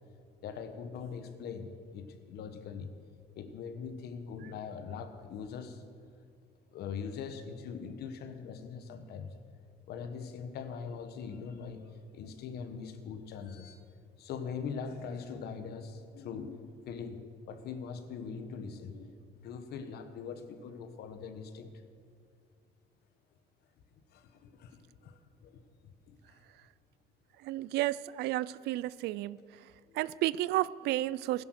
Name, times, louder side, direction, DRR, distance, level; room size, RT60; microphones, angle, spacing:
voice 1, 0.4-2.9 3.3-5.8 6.7-9.3 9.9-11.8 12.1-13.8 14.2-21.7 24.1-26.4 29.9-30.0, left 6 dB, 70° left, 9 dB, 1.3 m, -42 dB
voice 2, 27.4-29.4 29.9-31.4, right 15 dB, 80° right, 20 dB, 0.4 m, -32 dB
16.0 x 10.5 x 6.5 m, 2.3 s
cardioid pair, 110°, 17 cm